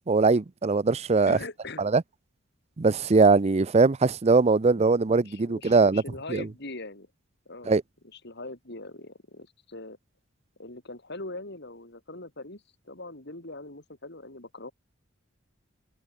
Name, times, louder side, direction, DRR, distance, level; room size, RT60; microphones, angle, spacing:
voice 1, 0.1-1.4 1.8-2.0 2.8-6.0 6.3-6.5 7.7-7.8, right 4 dB, 30° right, 0.5 m, -21 dB
voice 2, 1.3-1.9 4.7-4.9 5.2-7.1 7.5-7.7 8.1-10.0 10.6-14.7, left 2 dB, 55° left, 4.5 m, -41 dB
head